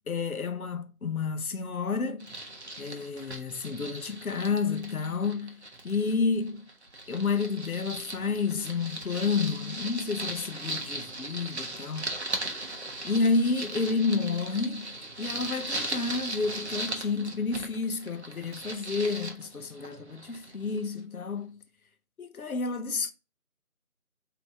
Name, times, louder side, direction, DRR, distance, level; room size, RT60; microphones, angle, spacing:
voice 1, 0.1-2.3 2.8-6.7 7.1-12.1 13.0-14.9 15.2-21.6 22.2-23.1, left 4 dB, 70° left, 0.8 m, -30 dB
sound 1, 2.2-6.2 6.5-20.8, right 1 dB, 45° right, 0.7 m, -38 dB
3.6 x 2.9 x 4.8 m
figure-of-eight pair, 170°, 45 cm